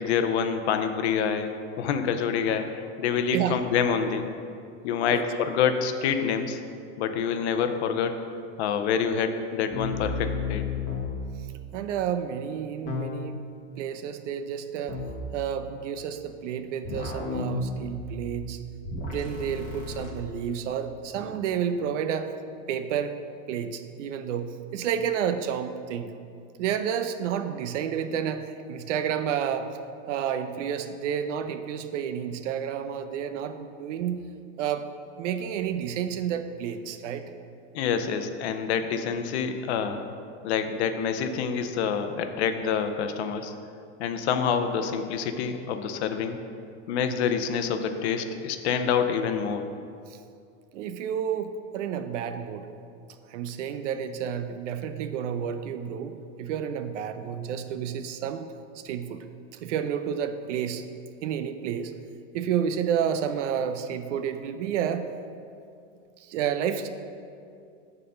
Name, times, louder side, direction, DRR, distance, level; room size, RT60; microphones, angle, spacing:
voice 1, 0.0-1.5 1.8-4.3 4.8-6.6 7.0-8.2 8.6-10.6 37.7-40.0 40.4-43.5 44.0-46.4 46.9-49.7, left 7 dB, 60° left, 8 dB, 0.7 m, -27 dB
sound 1, 9.7-11.2 12.9-13.4 14.9-15.2 16.8-18.4 18.8-20.1, left 4 dB, 20° left, 1.2 m, -32 dB
voice 2, 11.7-13.4 13.8-15.0 15.3-18.6 19.0-22.3 22.7-23.2 23.5-26.2 26.6-29.8 30.1-34.2 34.6-34.9 35.2-37.3 50.1-50.2 50.7-52.7 53.3-59.2 59.5-60.8 61.2-61.9 62.3-65.1 66.2-66.9, right 8 dB, 80° right, 9 dB, 0.7 m, -30 dB
7.7 x 4.1 x 6.7 m, 2.4 s
supercardioid pair, 180°, 36 cm